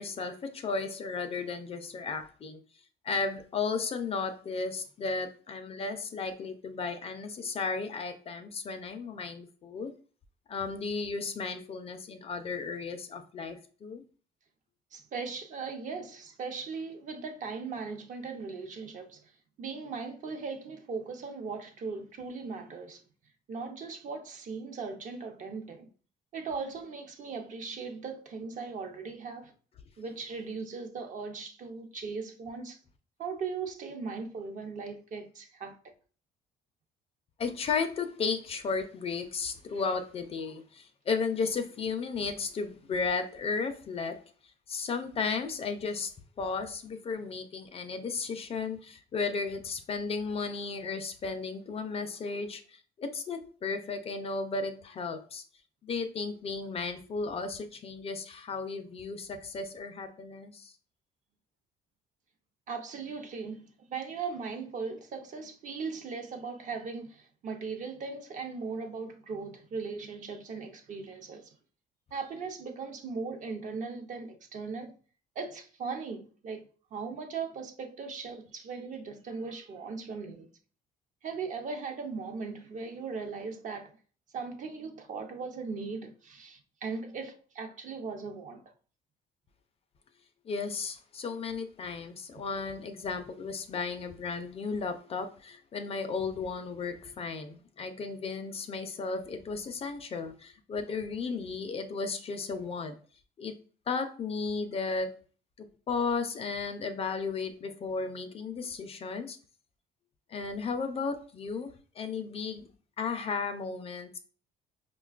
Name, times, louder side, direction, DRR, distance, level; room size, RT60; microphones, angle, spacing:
voice 1, 0.0-2.6 3.0-9.9 10.5-14.0 37.4-44.2 44.7-46.1 46.4-55.4 55.8-60.7 90.5-103.0 103.4-103.5 103.9-105.2 105.6-109.4 110.3-112.7 113.0-114.2, left 4 dB, 35° left, 0.4 m, -34 dB
voice 2, 14.9-19.3 19.6-23.0 23.5-25.9 26.3-29.5 30.0-32.8 33.2-35.9 39.7-39.8 62.7-71.5 72.1-74.9 75.4-80.5 81.2-83.9 84.3-88.7, right 4 dB, 50° right, 0.6 m, -38 dB
4.9 x 2.2 x 2.3 m
cardioid pair, 110°, 17 cm